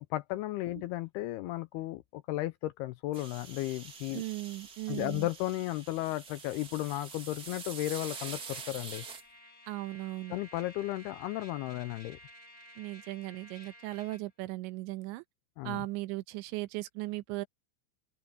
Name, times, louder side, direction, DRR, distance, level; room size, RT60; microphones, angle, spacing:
voice 1, 0.1-4.2 4.9-9.0 10.3-12.2 15.6-15.9, left 16 dB, 85° left, 2.3 m, -34 dB
sound 1, 3.1-9.2, right 5 dB, 45° right, 1.2 m, -46 dB
voice 2, 4.1-5.3 9.7-10.4 12.8-15.2 15.6-17.5, right 18 dB, 90° right, 3.2 m, -37 dB
Trumpet, 8.9-14.2, equal, 20° left, 2.6 m, -53 dB
open air
omnidirectional pair, 5.1 m